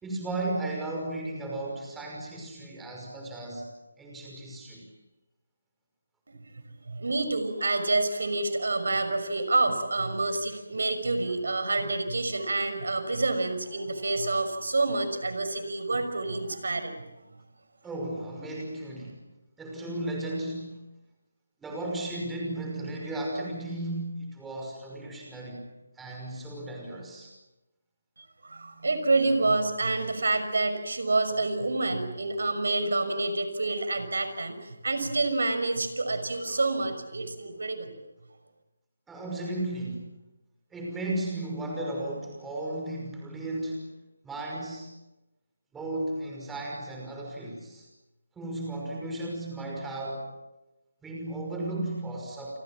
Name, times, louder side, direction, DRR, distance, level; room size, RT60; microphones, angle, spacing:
voice 1, 0.0-3.7 4.0-4.9 17.8-19.2 19.6-20.8 21.6-25.7 26.0-27.3 39.1-40.1 40.7-43.9 44.2-44.9 45.7-47.9 48.4-50.3 51.0-52.6, right 1 dB, 5° right, -1 dB, 5.6 m, -35 dB
voice 2, 6.9-17.0 28.4-37.9, right 2 dB, 65° right, 9 dB, 5.8 m, -28 dB
30.0 x 25.0 x 7.4 m, 1.0 s
figure-of-eight pair, 155°, 0 cm